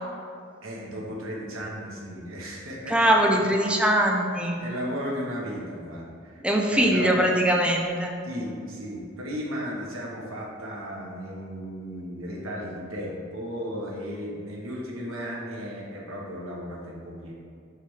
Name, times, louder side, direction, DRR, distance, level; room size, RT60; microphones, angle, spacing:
voice 1, 0.6-3.1 3.5-3.6 4.6-7.1 8.2-17.3, equal, 85° right, -3 dB, 1.4 m, -35 dB
voice 2, 2.9-4.6 6.4-8.1, right 1 dB, 5° right, 1 dB, 0.6 m, -22 dB
6.4 x 3.5 x 5.6 m, 2.3 s
head